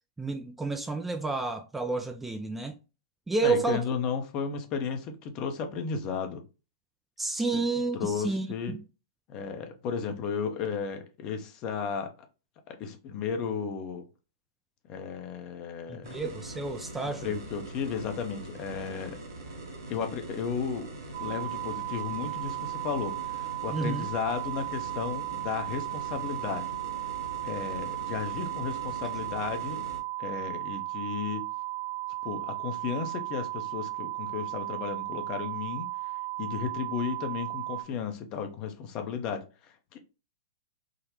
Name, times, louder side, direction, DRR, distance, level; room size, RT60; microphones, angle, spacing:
voice 1, 0.2-2.8 3.3-3.8 7.2-8.8 15.9-17.3 23.7-24.1, right 3 dB, 10° right, 0.3 m, -30 dB
voice 2, 3.4-6.4 7.9-8.7 9.3-12.1 12.7-14.1 14.9-16.1 17.0-19.2 19.9-20.9 21.2-26.8 27.4-29.9 30.2-31.5 32.2-35.9 36.4-40.0, left 6 dB, 35° left, 0.7 m, -34 dB
sound 1, 16.0-30.0, right 2 dB, 65° right, 0.8 m, -43 dB
sound 2, 21.1-37.8, right 18 dB, 35° right, 0.7 m, -35 dB
3.8 x 2.1 x 2.8 m
figure-of-eight pair, 105°, 2 cm